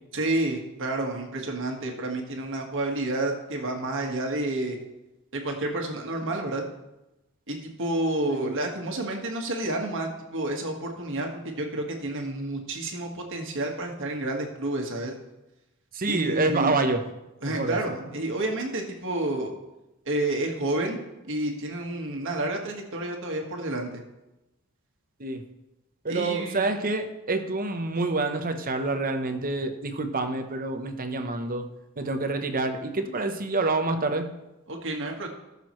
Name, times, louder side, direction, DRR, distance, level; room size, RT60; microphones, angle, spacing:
voice 1, 0.1-4.8 5.3-6.6 7.5-15.1 16.1-16.7 17.4-19.5 20.0-21.0 21.3-24.0 26.1-26.7 34.7-35.3, right 2 dB, 60° right, 2 dB, 1.7 m, -30 dB
voice 2, 15.9-17.0 17.5-18.1 25.2-25.4 26.0-31.7 32.0-34.3, right 3 dB, 40° right, 7 dB, 0.9 m, -27 dB
18.0 x 6.8 x 3.2 m, 0.97 s
head